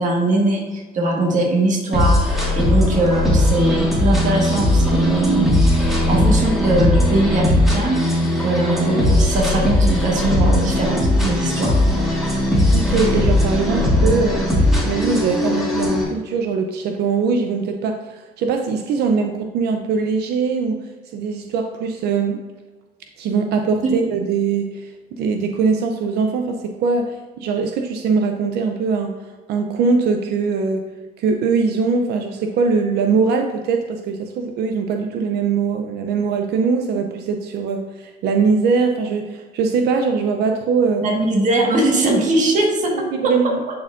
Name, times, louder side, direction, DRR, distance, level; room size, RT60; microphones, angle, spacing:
voice 1, 0.0-2.2 2.5-5.5 6.1-8.0 8.4-11.8 23.8-23.9 41.0-43.8, right 2 dB, 50° right, 0 dB, 1.6 m, -20 dB
sound 1, 1.9-16.0, left 1 dB, ahead, 1.7 m, -18 dB
voice 2, 12.7-14.5 14.8-20.8 21.1-22.4 23.2-29.1 29.5-30.8 31.2-41.0 42.9-43.6, right 5 dB, 75° right, 4 dB, 0.6 m, -21 dB
11.0 x 4.3 x 2.5 m, 1.3 s
cardioid pair, 110°, 17 cm